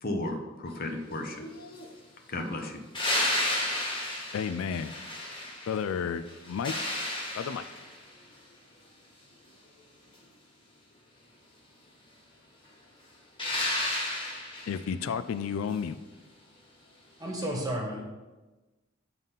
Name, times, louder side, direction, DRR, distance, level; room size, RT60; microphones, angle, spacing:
voice 1, 0.0-1.9 2.3-2.8, left 1 dB, 45° left, 4 dB, 0.7 m, -35 dB
sound 1, 2.9-5.9 6.3-8.0 13.4-14.8 17.4-17.5, left 1 dB, 25° left, 1.5 m, -32 dB
voice 2, 4.3-4.9 5.7-6.7 7.3-7.6 14.7-16.0, left 7 dB, 80° left, 12 dB, 0.3 m, -32 dB
voice 3, 17.2-18.0, right 1 dB, 20° right, -1 dB, 1.3 m, -32 dB
7.2 x 3.9 x 5.5 m, 1.2 s
head